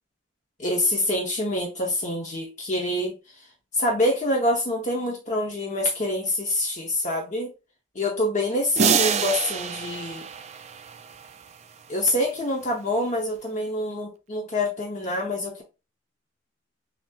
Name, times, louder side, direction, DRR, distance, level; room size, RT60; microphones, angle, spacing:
voice 1, 0.6-3.2 3.7-7.5 7.9-10.2 11.9-15.6, left 1 dB, 40° left, 0.8 m, -26 dB
sound 1, 8.8-11.3, right 7 dB, 35° right, 0.3 m, -26 dB
5.9 x 2.8 x 2.3 m
head